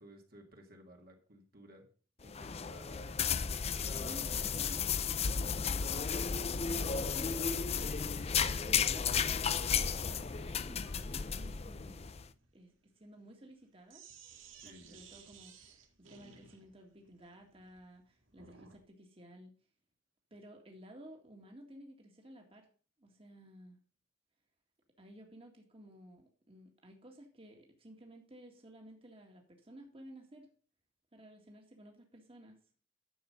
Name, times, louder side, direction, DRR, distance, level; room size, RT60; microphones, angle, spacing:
voice 1, 0.0-1.9 2.2-3.1 3.9-4.5 14.6-15.0, right 1 dB, 50° right, 2 dB, 1.9 m, -56 dB
sound 1, 2.2-12.2, left 6 dB, 30° left, 0.5 m, -34 dB
voice 2, 3.8-4.8 5.3-12.1 12.5-14.0 14.6-19.5 20.3-22.7 23.0-23.8 25.0-30.5 31.1-32.6, equal, 30° right, 2 dB, 2.0 m, -54 dB
Sink (filling or washing), 10.8-18.8, right 6 dB, 80° right, 2.0 m, -58 dB
11.0 x 7.2 x 5.3 m, 0.40 s
head